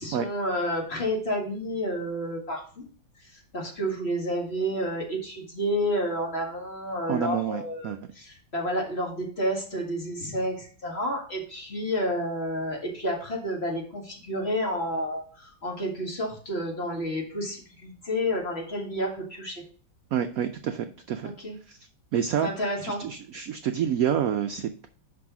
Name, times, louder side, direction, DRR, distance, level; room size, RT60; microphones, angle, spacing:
voice 1, 0.0-2.8 3.2-19.7 21.2-21.6 22.4-23.0, equal, 35° left, -1 dB, 2.1 m, -30 dB
voice 2, 7.1-8.0 20.1-21.4 21.7-21.8 22.1-22.5 22.8-24.9, right 8 dB, 80° right, 8 dB, 0.7 m, -28 dB
6.1 x 5.5 x 5.9 m, 0.43 s
omnidirectional pair, 2.1 m